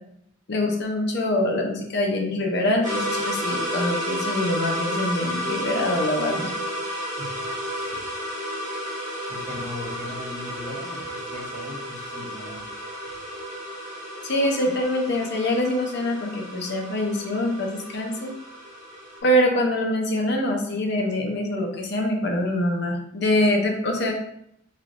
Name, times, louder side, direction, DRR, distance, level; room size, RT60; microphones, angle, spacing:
voice 1, 0.5-6.5 14.2-18.3 19.2-24.1, left 1 dB, 60° left, 1 dB, 0.6 m, -24 dB
sound 1, 2.8-19.2, equal, 45° right, 1.3 m, -32 dB
voice 2, 9.3-12.6, left 2 dB, 40° left, -3 dB, 1.0 m, -38 dB
3.2 x 2.9 x 2.5 m, 0.73 s
head